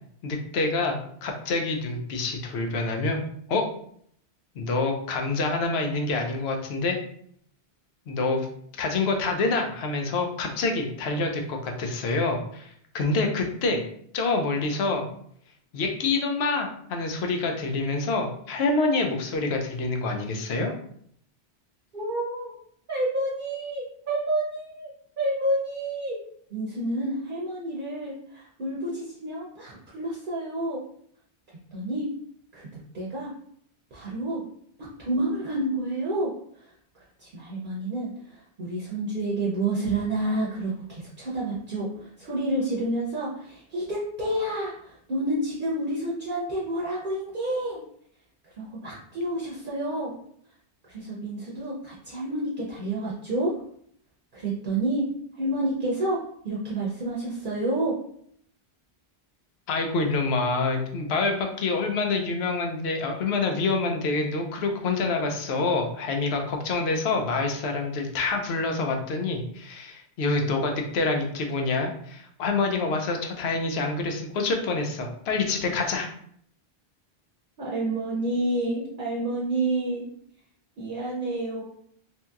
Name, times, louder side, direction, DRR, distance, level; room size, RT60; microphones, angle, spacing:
voice 1, 0.2-3.2 3.5-3.7 4.6-7.0 8.1-8.5 8.8-13.8 14.1-15.1 15.7-20.7 59.7-76.1, left 3 dB, 80° left, 3 dB, 0.8 m, -27 dB
voice 2, 21.9-22.5 22.9-24.9 25.2-26.2 26.5-30.8 31.7-32.1 32.5-33.3 33.9-34.4 34.8-36.3 36.6-36.7 37.2-47.8 48.6-50.1 50.9-53.5 54.3-55.1 55.4-58.0 77.6-80.0 80.8-81.6, right 1 dB, 55° right, -5 dB, 0.7 m, -29 dB
2.8 x 2.7 x 2.3 m, 0.65 s
omnidirectional pair, 1.1 m